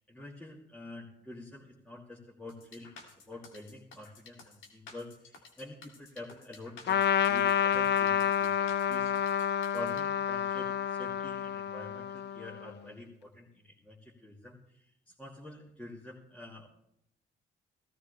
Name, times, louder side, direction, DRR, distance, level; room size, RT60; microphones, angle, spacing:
voice 1, 0.0-9.1 9.7-16.7, left 2 dB, 5° left, -6 dB, 2.7 m, -47 dB
sound 1, 2.5-10.0, left 4 dB, 80° left, 2.9 m, -53 dB
Trumpet, 6.9-12.7, left 9 dB, 60° left, 0.6 m, -29 dB
17.0 x 14.0 x 3.4 m, 0.77 s
cardioid pair, 90°, 20 cm